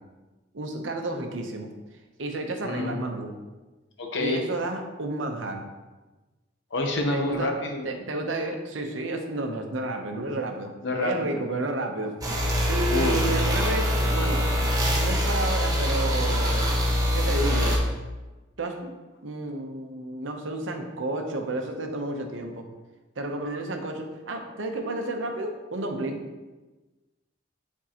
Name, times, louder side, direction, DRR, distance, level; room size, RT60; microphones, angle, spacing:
voice 1, 0.5-1.7 2.2-3.3 4.2-5.6 7.1-7.5 7.8-12.2 12.7-14.5 14.9-17.8 18.6-18.9 19.2-22.7 23.2-26.2, right 2 dB, 75° right, 4 dB, 0.8 m, -31 dB
voice 2, 2.6-3.0 4.0-4.4 6.7-8.0 10.8-11.4 12.9-13.2, left 2 dB, 65° left, 3 dB, 0.9 m, -28 dB
sound 1, 12.2-17.8, equal, 20° right, 1.0 m, -24 dB
7.3 x 4.5 x 2.9 m, 1.2 s
head